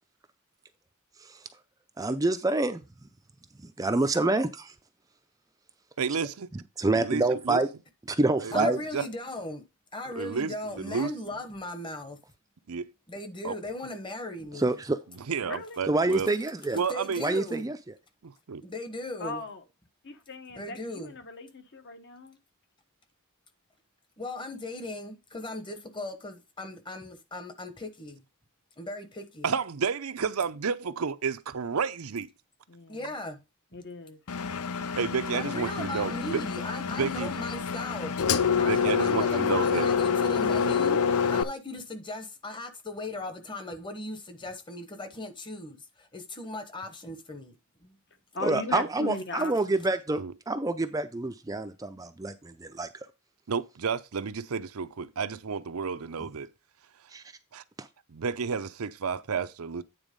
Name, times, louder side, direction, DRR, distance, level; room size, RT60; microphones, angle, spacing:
voice 1, 2.0-2.8 3.6-4.7 6.8-7.7 8.1-8.8 14.5-15.0 15.9-16.8 17.2-17.8 48.4-50.2 50.5-52.9 57.1-57.2 57.8-57.9, right 2 dB, 15° right, 0.5 m, -27 dB
voice 2, 6.0-6.5 7.0-7.6 8.4-9.1 10.2-11.4 12.7-12.9 13.4-13.6 15.3-16.3 16.7-17.3 18.2-18.6 29.4-32.3 35.0-36.4 36.9-37.3 38.5-39.9 50.2-50.3 53.5-56.5 57.5-57.6 58.1-59.8, right 5 dB, 75° right, 0.6 m, -31 dB
voice 3, 8.5-9.6 9.9-12.2 13.1-14.7 16.9-17.6 18.6-19.4 20.5-21.1 24.2-28.2 28.8-29.5 32.9-33.4 35.3-38.2 38.6-45.8 46.1-47.5 47.8-47.9, left 2 dB, 20° left, 1.2 m, -38 dB
voice 4, 15.4-15.8 19.2-19.6 20.0-22.4 32.7-33.1 33.7-34.2 48.3-49.5, left 2 dB, 55° left, 1.3 m, -38 dB
Engine, 34.3-41.4, left 6 dB, 80° left, 0.6 m, -27 dB
9.1 x 4.1 x 5.2 m
head